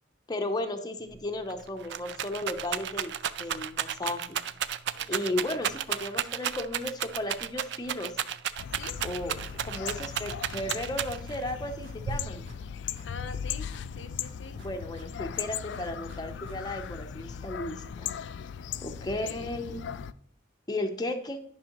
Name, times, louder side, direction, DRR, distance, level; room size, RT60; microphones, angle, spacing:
voice 1, 0.3-3.1 3.4-4.4 5.1-8.1 9.0-9.4 9.6-12.5 14.6-18.1 18.8-19.8 20.7-21.4, left 1 dB, 20° left, 5 dB, 0.6 m, -34 dB
Rattle, 1.1-1.2 1.5-11.4 12.1-12.7, right 9 dB, 65° right, 0.4 m, -33 dB
voice 2, 4.9-5.4 8.8-9.0 13.0-14.6 15.7-16.2 19.2-19.6, left 4 dB, 85° left, 11 dB, 0.7 m, -45 dB
sound 1, 8.6-20.1, left 8 dB, 70° left, 0.3 m, -38 dB
sound 2, 9.0-10.7 11.0-12.7 13.0-14.7 15.0-16.8, equal, 85° right, 1.7 m, -53 dB
10.5 x 5.5 x 2.9 m, 0.65 s
head